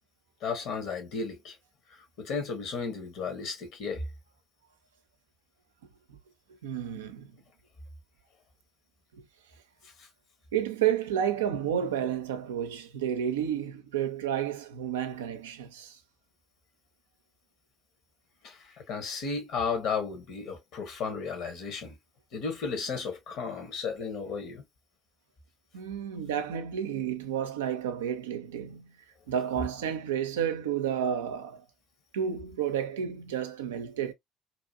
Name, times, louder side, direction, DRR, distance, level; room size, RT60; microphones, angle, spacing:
voice 1, 0.4-1.5 2.2-4.0 18.4-18.6 18.9-21.9 22.3-24.6, left 5 dB, 65° left, 1.1 m, -34 dB
voice 2, 6.6-7.3 9.1-9.2 10.5-16.0 25.7-28.9 29.3-31.6 32.1-34.1, right 9 dB, 85° right, 0.4 m, -31 dB
2.9 x 2.5 x 2.3 m
hypercardioid pair, 55°, 0 cm